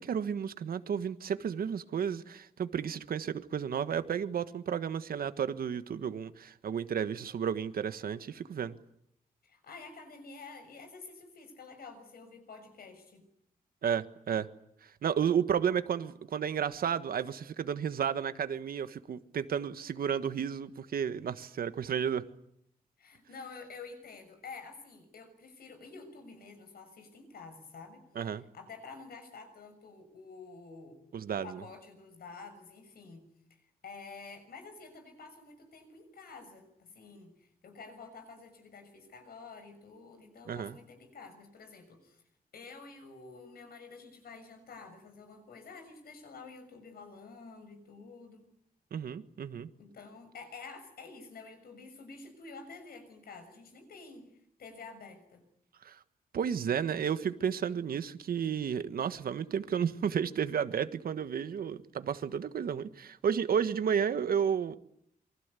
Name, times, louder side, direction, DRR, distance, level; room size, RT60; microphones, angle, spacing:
voice 1, 0.0-8.7 13.8-14.5 15.0-22.2 28.1-28.4 31.1-31.6 40.5-40.8 48.9-49.7 55.8-56.0 56.3-64.8, right 8 dB, 70° right, 1.5 m, -32 dB
voice 2, 9.4-13.3 23.0-28.1 28.3-31.0 31.3-33.3 33.6-42.2 42.5-48.5 49.8-54.3 54.6-55.4, left 4 dB, 75° left, 6.5 m, -49 dB
27.5 x 24.0 x 8.4 m
wide cardioid pair, 165°, 16 cm